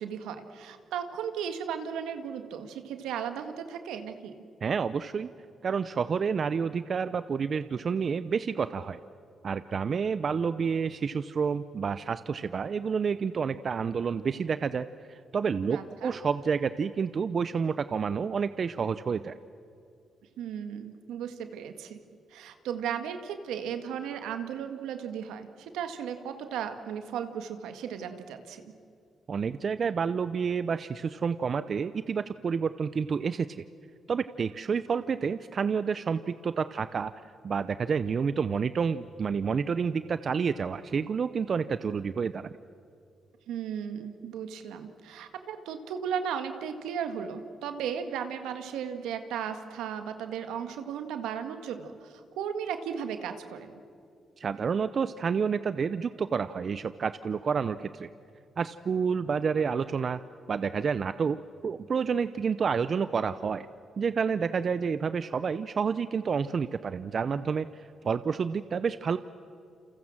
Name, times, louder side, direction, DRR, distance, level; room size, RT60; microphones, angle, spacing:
voice 1, 0.0-4.3 15.6-16.2 20.4-22.0 22.3-28.7 43.5-53.8, right 8 dB, 90° right, 8 dB, 1.9 m, -36 dB
voice 2, 4.6-5.3 5.6-9.0 9.4-19.4 29.3-33.6 34.1-37.1 37.4-42.5 54.4-58.1 58.6-60.2 60.5-61.4 61.6-63.7 64.0-69.2, right 6 dB, 55° right, 13 dB, 0.7 m, -29 dB
29.0 x 27.5 x 7.5 m, 2.5 s
supercardioid pair, 60°, 0 cm